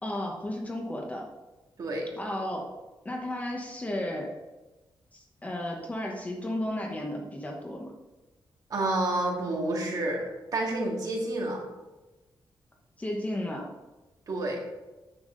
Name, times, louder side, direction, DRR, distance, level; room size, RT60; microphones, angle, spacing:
voice 1, 0.0-1.3 2.2-2.7 3.0-4.4 5.1-7.9 13.0-13.7, left 1 dB, 15° left, 0 dB, 1.0 m, -33 dB
voice 2, 8.7-10.2 10.5-11.6 14.3-14.6, right 2 dB, 50° right, -1 dB, 2.2 m, -29 dB
9.9 x 7.0 x 3.9 m, 1.1 s
wide cardioid pair, 180°, 9 cm